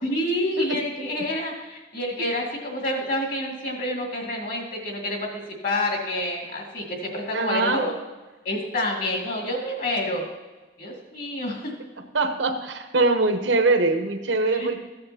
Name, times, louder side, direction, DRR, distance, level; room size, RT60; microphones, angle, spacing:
voice 1, 0.0-7.9 8.4-10.3 10.8-11.7 14.5-14.8, left 1 dB, 45° left, 0 dB, 2.2 m, -28 dB
voice 2, 7.3-7.9 12.1-14.8, right 3 dB, 80° right, 6 dB, 1.0 m, -22 dB
15.0 x 8.7 x 2.9 m, 1.2 s
head